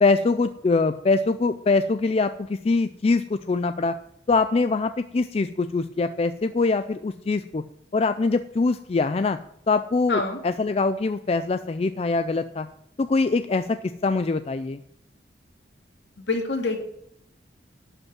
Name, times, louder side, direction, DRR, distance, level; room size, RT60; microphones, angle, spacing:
voice 1, 0.0-3.9 4.3-7.6 7.9-9.4 9.7-12.7 13.0-14.8, left 3 dB, 30° left, 11 dB, 0.3 m, -23 dB
voice 2, 10.1-10.4 16.2-16.8, left 3 dB, 65° left, 2 dB, 2.3 m, -26 dB
12.0 x 5.4 x 8.9 m, 0.73 s
head